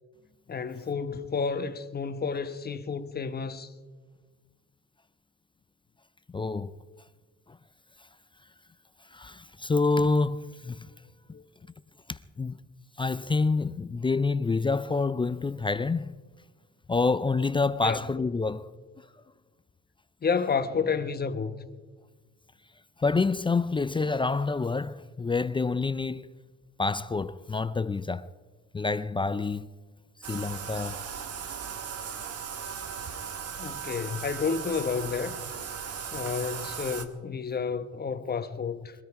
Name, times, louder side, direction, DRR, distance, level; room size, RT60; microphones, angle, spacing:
voice 1, 0.5-3.7 11.3-11.4 17.8-18.0 20.2-21.7 33.6-35.4 36.1-38.9, left 5 dB, 35° left, 1.0 m, -30 dB
voice 2, 6.3-6.8 9.1-10.9 12.1-12.6 13.0-16.2 16.9-18.8 23.0-26.3 26.8-28.3 28.7-29.7 30.3-31.0, left 4 dB, 20° left, 0.4 m, -27 dB
Bathtub (filling or washing), 30.2-37.1, right 7 dB, 55° right, 1.5 m, -37 dB
22.5 x 13.0 x 4.8 m
cardioid pair, 110°, 29 cm